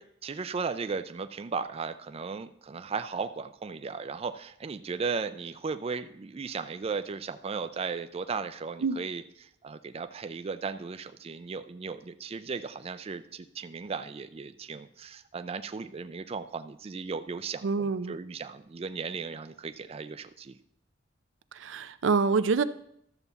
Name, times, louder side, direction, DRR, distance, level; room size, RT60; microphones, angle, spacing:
voice 1, 0.0-20.6, right 5 dB, 30° right, 10 dB, 0.4 m, -36 dB
voice 2, 17.6-18.2 21.6-22.6, right 4 dB, 85° right, 13 dB, 0.5 m, -26 dB
12.5 x 6.9 x 4.1 m, 0.73 s
head